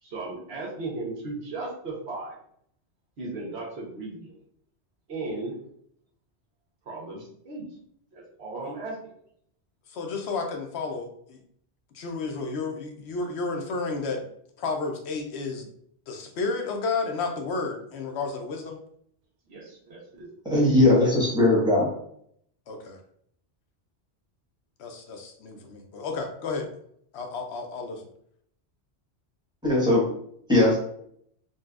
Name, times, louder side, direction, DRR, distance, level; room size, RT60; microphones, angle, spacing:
voice 1, 0.0-2.4 3.2-4.4 5.1-5.5 6.9-7.7 8.1-9.0 19.5-20.6, right 3 dB, 70° right, -4 dB, 1.3 m, -36 dB
voice 2, 9.9-11.4 11.9-14.2 14.6-15.7 16.1-18.8 22.7-23.0 24.8-26.7 27.1-28.0, left 4 dB, 75° left, 3 dB, 0.8 m, -32 dB
voice 3, 20.5-21.9 29.6-30.1 30.5-30.8, left 1 dB, 5° right, -6 dB, 1.1 m, -19 dB
3.9 x 2.2 x 2.3 m, 0.68 s
omnidirectional pair, 1.1 m